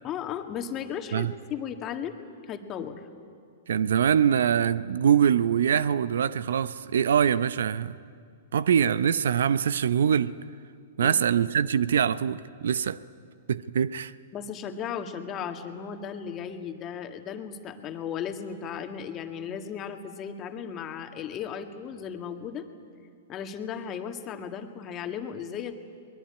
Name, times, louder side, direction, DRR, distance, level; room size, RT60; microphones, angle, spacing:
voice 1, 0.0-2.2 2.5-3.1 11.0-11.1 14.3-22.6 23.3-25.7, left 8 dB, 30° left, 1.9 m, -35 dB
voice 2, 3.7-8.0 8.5-10.3 11.0-13.0 13.5-14.1, right 8 dB, 75° right, 0.7 m, -23 dB
22.5 x 20.5 x 9.8 m
hypercardioid pair, 120°, 0 cm